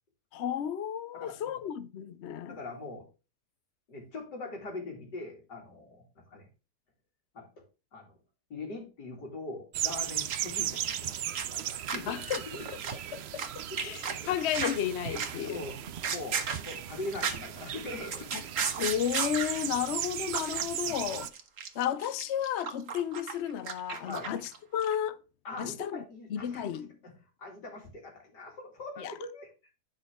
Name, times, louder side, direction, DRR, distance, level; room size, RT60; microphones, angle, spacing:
voice 1, 0.3-2.6 12.1-12.4 13.1-15.6 18.3-18.4 18.8-21.3 21.7-25.2 25.6-26.0 26.3-26.9 29.0-29.1, left 9 dB, 60° left, 0.7 m, -33 dB
voice 2, 1.1-1.5 2.5-3.1 3.9-6.0 6.3-6.5 7.3-7.5 7.9-8.1 8.5-12.8 13.7-14.3 15.5-18.5 19.6-19.7 20.8-21.0 24.0-24.3 25.4-26.6 27.0-27.1 27.4-29.5, left 2 dB, 90° left, 3.3 m, -42 dB
sound 1, 9.7-21.3, right 10 dB, 80° right, 0.5 m, -37 dB
sound 2, 10.3-10.6 10.8-13.5 13.8-14.8 15.2-15.5 15.8-17.5 17.8-19.7 20.0-20.1 20.3-20.6 20.9-24.6 24.8-24.9, right 6 dB, 55° right, 1.4 m, -34 dB
10.0 x 5.5 x 3.6 m
omnidirectional pair, 1.8 m